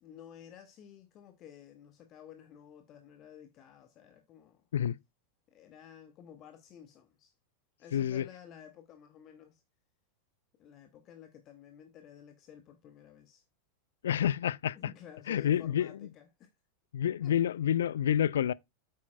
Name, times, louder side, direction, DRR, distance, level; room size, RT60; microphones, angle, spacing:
voice 1, 0.0-4.6 5.5-7.3 7.8-9.6 10.6-13.4 14.8-16.5 17.2-17.4, left 9 dB, 35° left, 0.9 m, -53 dB
voice 2, 7.9-8.3 14.0-14.8 15.3-16.0 16.9-18.5, left 10 dB, 60° left, 0.3 m, -28 dB
8.5 x 8.4 x 2.2 m
figure-of-eight pair, 90°, 0 cm